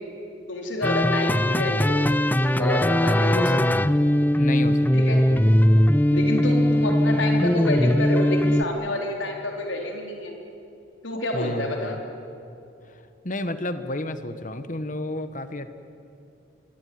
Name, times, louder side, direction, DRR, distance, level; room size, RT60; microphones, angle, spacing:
voice 1, 0.5-2.0 2.3-3.9 4.9-5.2 6.1-10.4 11.0-11.9, left 1 dB, 90° left, 1 dB, 4.1 m, -28 dB
sound 1, 0.8-8.6, left 1 dB, 10° left, 0.5 m, -20 dB
voice 2, 4.3-5.6 6.1-6.4 11.3-12.0 12.9-15.7, left 1 dB, 40° left, 10 dB, 1.4 m, -32 dB
24.0 x 24.0 x 9.5 m, 2.6 s
head